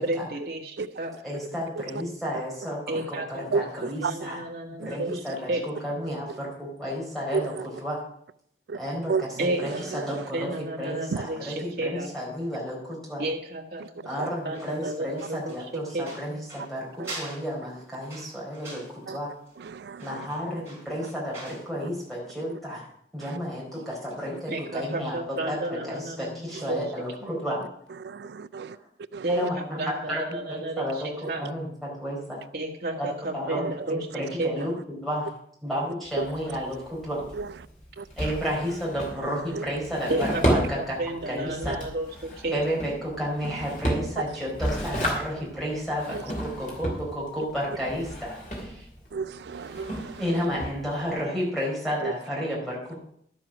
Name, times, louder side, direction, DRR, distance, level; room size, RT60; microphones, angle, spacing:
voice 1, 0.0-1.1 2.9-5.2 5.5-5.6 9.4-12.1 13.2-16.1 24.5-26.8 27.2-27.3 29.2-31.4 32.5-34.7 40.1-42.6, right 1 dB, 60° right, 1.8 m, -32 dB
voice 2, 1.2-4.4 4.8-7.5 7.8-8.0 8.8-13.2 14.0-19.3 20.0-22.9 23.1-25.2 25.4-27.6 28.5-28.8 29.2-31.1 31.4-32.4 33.0-33.1 33.3-33.6 33.9-35.3 35.6-37.2 38.2-41.0 41.3-41.8 42.5-48.9 50.2-53.0, equal, ahead, 4.6 m, -32 dB
voice 3, 3.5-4.3 4.8-4.9 7.3-7.7 8.7-8.8 9.1-9.3 9.6-10.3 11.1-11.3 14.2-14.3 17.0-17.2 19.1-19.2 19.6-20.3 23.2-23.4 23.8-23.9 28.0-28.8 29.1-29.5 31.4-31.5 33.5-33.7 36.2-36.3 37.3-37.5 38.0-38.1 39.5-39.7 41.7-41.8 46.1-46.2 49.1-50.4 52.0-52.1, right 5 dB, 75° right, 0.3 m, -32 dB
sound 1, 14.5-21.7 21.9-22.1, right 2 dB, 15° right, 4.2 m, -44 dB
Drawer open or close, 36.0-51.2, equal, 45° left, 3.1 m, -33 dB
11.5 x 7.7 x 6.1 m
head